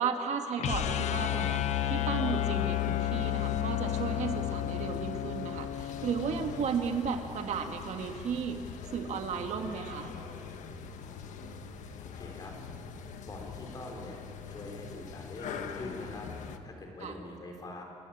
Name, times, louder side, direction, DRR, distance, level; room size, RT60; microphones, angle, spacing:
voice 1, 0.0-8.6 8.9-10.1 17.0-17.2, right 6 dB, 65° right, 5 dB, 1.7 m, -34 dB
sound 1, 0.6-6.7, left 13 dB, 65° left, 0.8 m, -31 dB
sound 2, 1.0-16.6, left 6 dB, 85° left, 1.3 m, -43 dB
voice 2, 12.0-12.5 13.2-14.2 14.5-16.3 16.6-17.8, left 2 dB, 30° left, 2 dB, 3.7 m, -43 dB
29.0 x 13.0 x 9.9 m, 2.6 s
wide cardioid pair, 180°, 12 cm